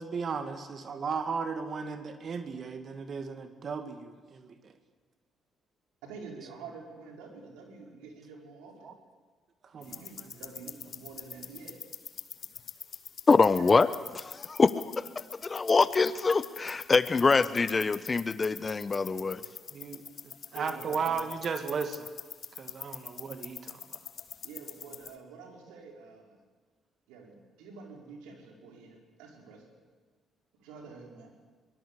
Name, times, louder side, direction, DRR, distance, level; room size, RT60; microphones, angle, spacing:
voice 1, 0.0-4.7 8.8-8.9 9.7-10.3 19.7-20.0 20.5-22.1 22.6-24.0, right 5 dB, 50° right, 8 dB, 1.9 m, -35 dB
voice 2, 6.0-8.9 9.7-11.8 13.5-13.7 19.0-19.3 20.5-21.3 24.4-26.4 27.1-29.6 30.6-31.3, right 4 dB, 80° right, 1 dB, 4.7 m, -47 dB
sound 1, 9.8-25.1, left 7 dB, 55° left, 1.6 m, -45 dB
voice 3, 13.3-13.9 14.1-19.4, left 4 dB, 35° left, 14 dB, 1.0 m, -25 dB
22.5 x 19.0 x 8.3 m, 1.4 s
hypercardioid pair, 50°, 0 cm